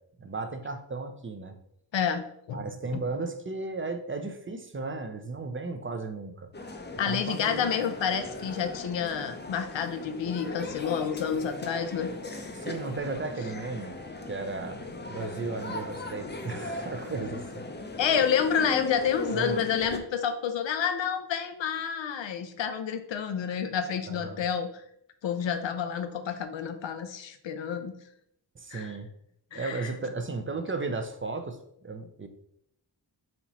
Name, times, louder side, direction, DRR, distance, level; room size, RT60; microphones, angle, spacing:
voice 1, 0.2-1.6 2.5-6.5 7.0-7.7 12.5-14.0 14.3-17.7 19.3-19.7 24.1-24.4 28.5-29.1 29.5-32.3, right 3 dB, 25° right, 7 dB, 0.6 m, -35 dB
voice 2, 1.9-2.7 2.9-3.0 7.0-12.1 18.0-24.7 25.2-28.0 28.7-28.9 29.5-29.9, left 7 dB, 75° left, 9 dB, 0.6 m, -29 dB
sound 1, 6.5-20.0, left 2 dB, 25° left, 0.6 m, -38 dB
4.3 x 2.8 x 4.2 m, 0.74 s
cardioid pair, 45°, 45 cm